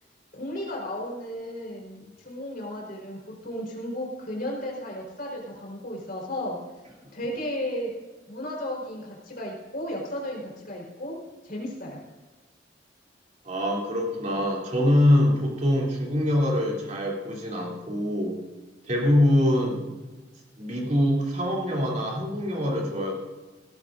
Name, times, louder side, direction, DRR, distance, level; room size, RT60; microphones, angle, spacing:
voice 1, 0.3-6.6 7.1-7.9 8.3-11.2 11.4-12.0, left 1 dB, 55° left, -1 dB, 4.2 m, -34 dB
voice 2, 13.4-18.4 18.9-19.9 20.6-23.1, left 1 dB, 40° right, -2 dB, 3.1 m, -24 dB
18.0 x 13.0 x 2.6 m, 1.2 s
head